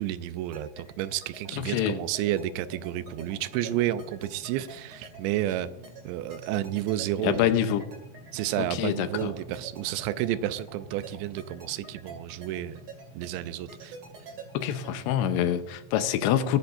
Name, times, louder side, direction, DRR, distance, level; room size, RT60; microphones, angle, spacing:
voice 1, 0.0-5.7 6.0-7.5 8.3-12.8 13.2-14.0, right 13 dB, 85° right, 13 dB, 2.8 m, -31 dB
sound 1, 0.5-15.2, right 5 dB, 40° right, 2.4 m, -45 dB
sound 2, 1.3-15.9, right 3 dB, 55° right, 3.0 m, -51 dB
voice 2, 1.6-2.0 7.2-7.9 8.6-9.3 14.5-16.6, left 10 dB, 80° left, 10 dB, 3.0 m, -26 dB
21.0 x 9.9 x 2.6 m, 0.88 s
omnidirectional pair, 5.2 m